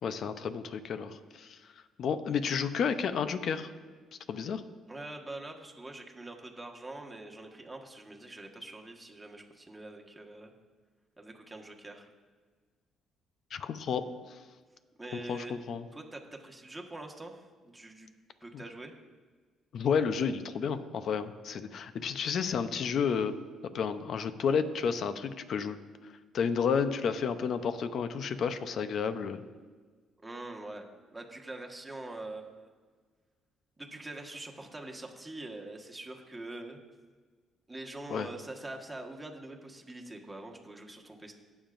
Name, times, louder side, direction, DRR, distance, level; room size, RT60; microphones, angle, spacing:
voice 1, 0.0-1.6 2.0-3.7 4.3-4.6 13.5-14.4 15.1-15.8 18.5-18.6 19.7-23.4 23.7-25.8 26.3-29.4 38.1-38.3, left 6 dB, 60° left, 11 dB, 0.6 m, -31 dB
voice 2, 4.9-10.5 11.2-12.1 15.0-15.5 15.9-18.1 18.4-18.9 30.2-30.8 31.1-32.7 33.8-36.8 37.7-41.3, right 2 dB, 15° right, 1 dB, 1.5 m, -44 dB
18.5 x 7.2 x 2.6 m, 1.4 s
cardioid pair, 90°, 0 cm